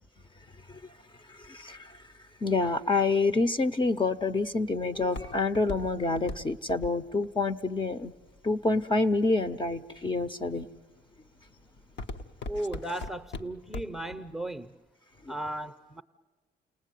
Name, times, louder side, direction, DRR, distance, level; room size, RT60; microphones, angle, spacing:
voice 1, 1.3-2.0 2.4-8.1 8.4-10.7 15.2-15.3, left 3 dB, 25° left, 0.9 m, -27 dB
Walk footsteps, 3.9-9.0 9.6-10.1 10.6-10.9 11.3-14.1 14.5-14.6, left 2 dB, 65° left, 1.2 m, -40 dB
voice 2, 12.5-14.7 15.3-16.0, right 1 dB, ahead, 0.8 m, -35 dB
29.5 x 19.0 x 9.3 m
cardioid pair, 90°, 20 cm